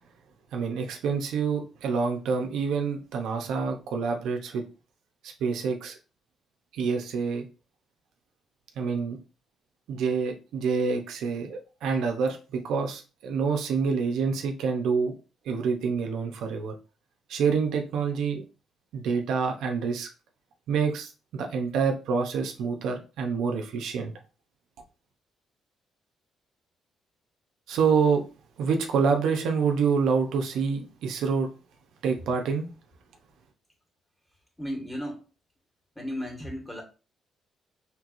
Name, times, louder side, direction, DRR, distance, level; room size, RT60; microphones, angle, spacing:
voice 1, 0.5-4.6 5.4-6.0 6.7-7.4 8.8-9.2 9.9-15.1 15.5-16.7 17.3-18.4 18.9-20.1 20.7-24.1 27.7-28.2 28.6-31.5 32.0-32.7, right 5 dB, 80° right, 3 dB, 0.7 m, -27 dB
voice 2, 34.6-35.2 36.0-36.8, equal, 5° left, 0 dB, 1.8 m, -34 dB
4.6 x 3.3 x 2.5 m, 0.32 s
cardioid pair, 90°, 0 cm